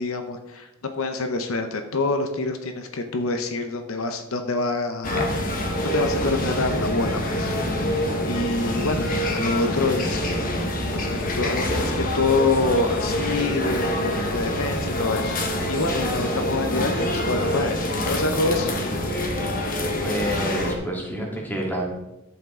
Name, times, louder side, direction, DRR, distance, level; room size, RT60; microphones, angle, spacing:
voice 1, 0.0-5.3 5.8-7.6 8.3-10.3 10.9-15.4 15.7-18.7, left 3 dB, 80° left, 6 dB, 0.8 m, -26 dB
sound 1, 5.0-20.7, left 1 dB, 45° left, 1.3 m, -26 dB
voice 2, 20.0-21.8, right 1 dB, 10° left, -2 dB, 2.2 m, -28 dB
11.0 x 8.3 x 3.7 m, 0.97 s
head